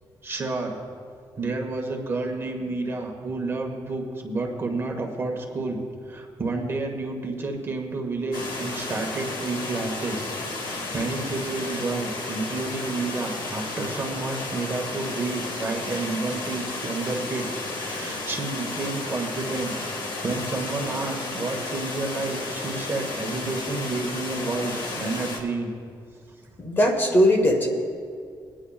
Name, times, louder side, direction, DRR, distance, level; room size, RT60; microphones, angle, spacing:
voice 1, 0.2-0.8 1.4-5.8 6.1-10.4 10.6-25.7, right 3 dB, 30° right, 1 dB, 1.3 m, -30 dB
sound 1, 8.3-25.4, left 2 dB, 75° left, 1.8 m, -33 dB
voice 2, 26.6-27.7, equal, 25° left, 3 dB, 1.1 m, -19 dB
21.0 x 10.0 x 2.4 m, 2.2 s
cardioid pair, 140°, 8 cm